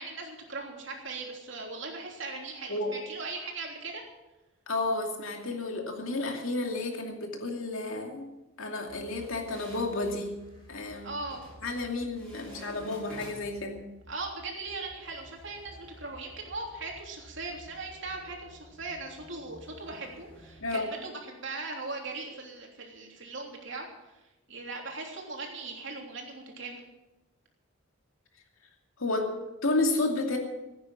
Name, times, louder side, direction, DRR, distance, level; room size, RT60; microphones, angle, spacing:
voice 1, 0.0-4.0 11.0-11.4 14.1-24.2 24.5-26.8, right 3 dB, 60° right, 0 dB, 3.2 m, -39 dB
voice 2, 4.7-8.3 8.6-10.4 10.7-11.1 11.6-13.8 20.6-20.9 29.0-30.4, left 2 dB, 75° left, 2 dB, 2.6 m, -31 dB
sound 1, 8.9-20.6, equal, 20° left, 6.2 m, -54 dB
sound 2, 9.1-10.3 11.3-11.8 12.2-13.6, equal, 5° left, 6.1 m, -49 dB
16.0 x 9.4 x 7.4 m, 1.0 s
head